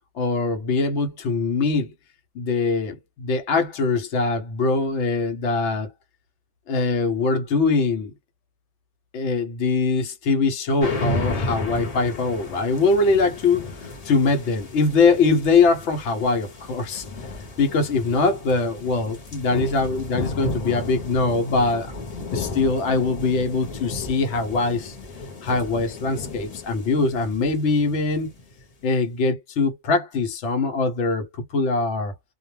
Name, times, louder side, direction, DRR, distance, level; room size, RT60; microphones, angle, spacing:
voice 1, 0.1-1.9 2.3-5.9 6.7-8.1 9.1-17.0 17.6-21.9 22.3-25.0 25.4-28.3 28.8-32.1, left 3 dB, 90° left, 0.9 m, -22 dB
sound 1, 10.8-28.6, left 2 dB, 40° left, 0.8 m, -33 dB
2.2 x 2.1 x 3.0 m
omnidirectional pair, 1.2 m